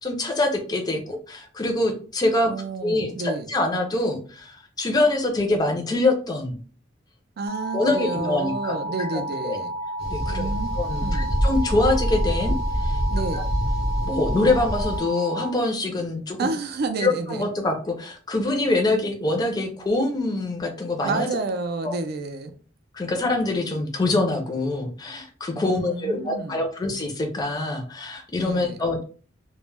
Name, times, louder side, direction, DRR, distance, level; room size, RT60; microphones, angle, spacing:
voice 1, 0.0-2.5 2.8-3.1 3.5-6.6 7.7-8.8 9.1-9.6 10.1-10.5 10.8-12.6 12.8-13.0 13.3-13.4 14.0-16.5 17.0-21.3 21.8-22.0 22.9-29.0, left 2 dB, 20° left, 2 dB, 0.5 m, -24 dB
voice 2, 2.4-3.5 7.4-9.7 10.3-10.7 11.0-11.3 13.1-13.4 16.4-17.5 21.0-22.5 25.5-26.6 28.4-28.8, right 3 dB, 55° right, 8 dB, 0.4 m, -30 dB
sound 1, 7.5-15.5, right 1 dB, 75° left, 0.5 m, -32 dB
sound 2, 10.0-15.0, equal, 35° right, 0.8 m, -26 dB
2.2 x 2.1 x 3.2 m, 0.40 s
head